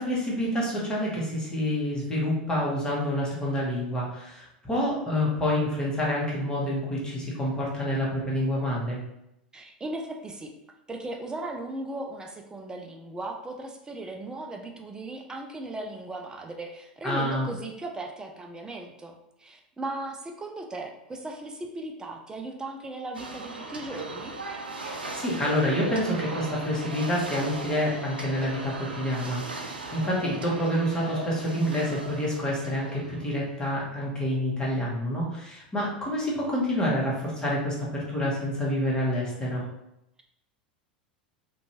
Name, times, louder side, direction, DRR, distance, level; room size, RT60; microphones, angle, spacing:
voice 1, 0.0-9.0 17.0-17.5 24.8-39.7, left 1 dB, 15° left, -5 dB, 1.0 m, -28 dB
voice 2, 9.5-10.5 10.9-24.4, right 2 dB, 15° right, 2 dB, 0.4 m, -37 dB
sound 1, 23.1-33.6, right 2 dB, 85° right, 0.4 m, -38 dB
2.6 x 2.2 x 2.9 m, 0.85 s
hypercardioid pair, 90°, 5 cm